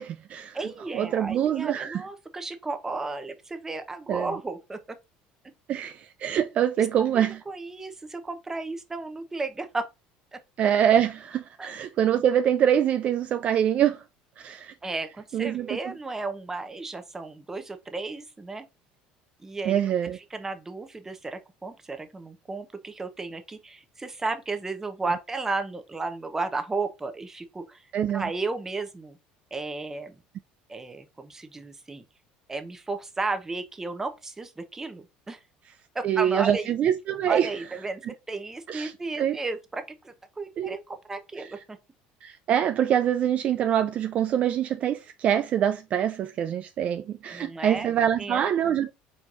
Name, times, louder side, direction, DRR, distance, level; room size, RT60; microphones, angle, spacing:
voice 1, 0.0-0.6 0.9-2.0 4.1-4.3 5.7-7.4 10.6-14.0 14.4-14.7 15.3-15.8 19.7-20.2 27.9-28.3 36.0-37.5 38.7-38.9 39.2-39.4 40.6-40.8 42.2-48.9, right 9 dB, 45° right, 0.4 m, -25 dB
voice 2, 0.5-4.8 6.8-6.9 7.1-9.9 10.3-10.4 11.6-11.7 14.8-18.7 19.4-19.8 20.3-27.8 28.1-29.2 29.5-30.2 30.7-32.0 32.5-35.4 35.9-36.7 37.3-38.0 38.3-41.8 47.3-47.9 48.2-48.4, right 3 dB, 15° right, 0.8 m, -34 dB
4.5 x 4.3 x 2.5 m
cardioid pair, 125°, 3 cm